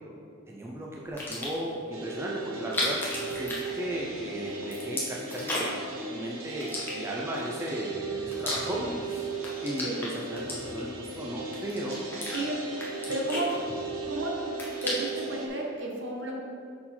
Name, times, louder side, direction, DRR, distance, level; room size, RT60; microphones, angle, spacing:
voice 1, 0.5-5.7 6.1-8.8 9.1-9.3 9.6-12.0, right 1 dB, 10° right, -3 dB, 0.4 m, -36 dB
sound 1, 1.0-1.7 2.5-4.2 4.5-5.9 6.6-7.4 7.9-9.0 9.3-11.0 11.5-12.4 12.8-14.1 14.4-15.3, left 1 dB, 10° left, 1.0 m, -35 dB
sound 2, 1.9-15.5, right 3 dB, 90° right, 0.8 m, -37 dB
voice 2, 12.3-13.6 14.1-14.3 14.8-16.3, right 1 dB, 60° right, -1 dB, 1.0 m, -33 dB
5.7 x 4.4 x 4.2 m, 2.4 s
head